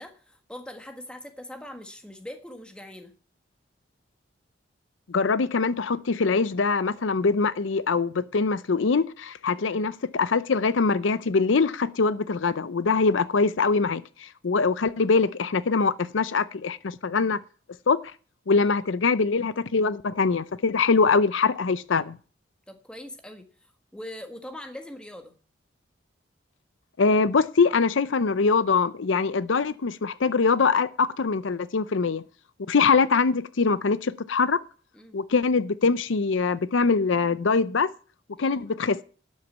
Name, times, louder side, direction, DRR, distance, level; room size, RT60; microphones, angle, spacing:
voice 1, 0.0-3.1 9.6-9.9 18.6-18.8 22.7-25.3 34.9-35.2 38.3-38.6, left 1 dB, 5° left, 1.5 m, -42 dB
voice 2, 5.1-17.4 17.9-18.0 18.5-22.2 27.0-32.2 32.7-34.6 35.1-37.9 38.4-39.0, left 4 dB, 80° left, 0.6 m, -23 dB
12.0 x 6.5 x 7.2 m
head